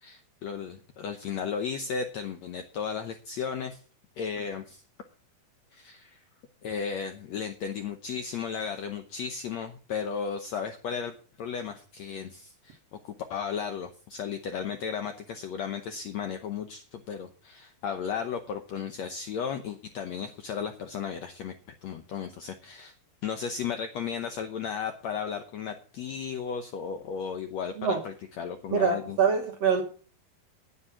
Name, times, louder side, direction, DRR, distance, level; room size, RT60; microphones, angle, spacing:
voice 1, 0.0-3.8 4.2-4.8 5.7-6.2 6.6-21.5 21.8-22.9 23.2-29.2, left 6 dB, 75° left, 1.6 m, -35 dB
voice 2, 28.7-29.8, right 6 dB, 60° right, 1.9 m, -24 dB
9.7 x 9.6 x 5.8 m
omnidirectional pair, 4.2 m